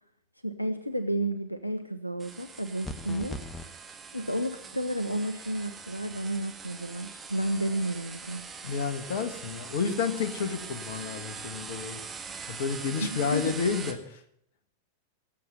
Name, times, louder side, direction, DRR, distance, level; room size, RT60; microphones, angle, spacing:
voice 1, 0.4-3.4 4.1-8.4 13.0-13.6, right 1 dB, 90° left, 11 dB, 0.7 m, -31 dB
sound 1, 2.2-13.9, right 5 dB, 15° right, 1.8 m, -42 dB
sound 2, 2.8-3.7, left 1 dB, 15° left, 1.2 m, -38 dB
voice 2, 8.6-12.0 12.5-14.2, left 5 dB, 55° left, 10 dB, 1.6 m, -30 dB
18.0 x 7.7 x 6.8 m, 0.69 s
figure-of-eight pair, 90°, 0 cm